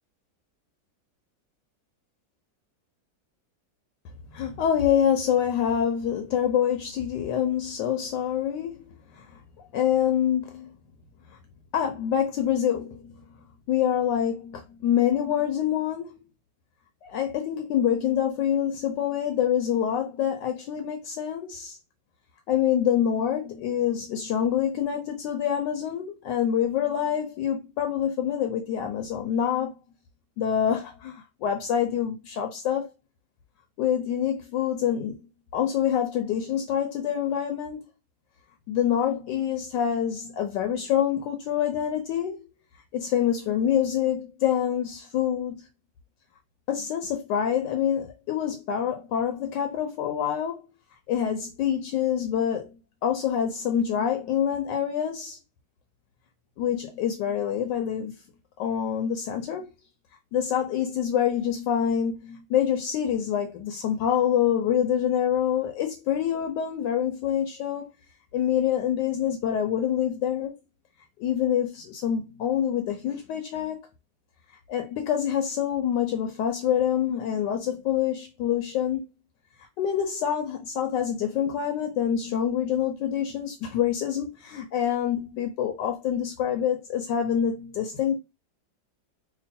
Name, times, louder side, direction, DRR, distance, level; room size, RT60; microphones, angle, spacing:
voice 1, 4.3-8.8 9.1-9.3 9.7-10.7 11.7-13.1 13.7-16.2 17.0-21.8 22.5-29.7 30.4-32.9 33.8-35.2 35.5-37.8 38.7-42.4 42.9-45.6 46.7-50.6 51.1-52.7 53.0-55.4 56.6-58.2 58.6-59.7 60.3-67.9 68.3-70.5 71.2-73.8 74.7-79.0 79.8-88.2, left 9 dB, 75° left, 1.2 m, -26 dB
3.0 x 2.3 x 4.2 m
omnidirectional pair, 2.0 m